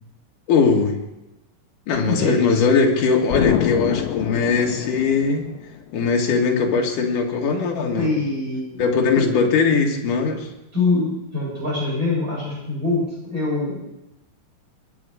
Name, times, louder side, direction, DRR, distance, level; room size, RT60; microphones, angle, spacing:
voice 1, 0.5-1.0 1.9-5.5 5.9-8.1 8.8-10.5, left 5 dB, 65° left, 1 dB, 3.3 m, -20 dB
voice 2, 2.1-2.4 8.0-9.2 10.7-13.8, left 3 dB, 20° right, -5 dB, 8.3 m, -24 dB
Explosion, 3.3-6.0, left 11 dB, 90° left, 2.6 m, -26 dB
22.5 x 10.5 x 5.1 m, 0.93 s
omnidirectional pair, 4.2 m